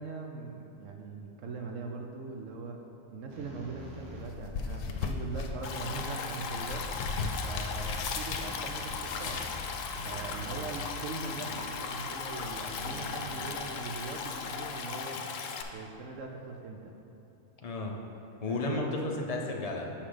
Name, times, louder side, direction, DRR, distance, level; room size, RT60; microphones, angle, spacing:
voice 1, 0.0-2.8 3.1-15.2 15.7-16.9 18.5-19.1, right 4 dB, 65° right, 2 dB, 0.9 m, -41 dB
sound 1, 3.3-4.5 5.9-6.6 8.3-11.9 12.6-14.1, right 2 dB, 90° right, 1.6 m, -46 dB
sound 2, 3.8-14.8, left 4 dB, 85° left, 1.1 m, -40 dB
Stream, 5.6-15.6, left 5 dB, 65° left, 0.9 m, -38 dB
voice 2, 17.6-18.0 18.4-19.9, left 2 dB, 50° left, 0 dB, 0.4 m, -33 dB
6.5 x 5.8 x 5.0 m, 3.0 s
omnidirectional pair, 1.5 m